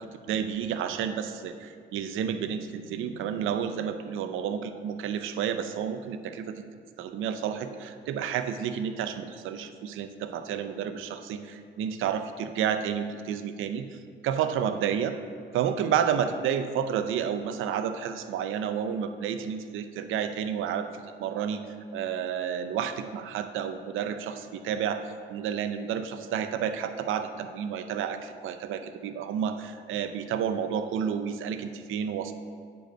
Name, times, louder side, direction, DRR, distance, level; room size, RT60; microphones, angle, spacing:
voice 1, 0.0-6.6 7.0-15.2 15.5-20.9 21.2-21.6 21.9-25.0 25.3-32.3, right 8 dB, 85° right, 9 dB, 0.6 m, -30 dB
8.5 x 5.4 x 6.7 m, 2.1 s
cardioid pair, 90°, 20 cm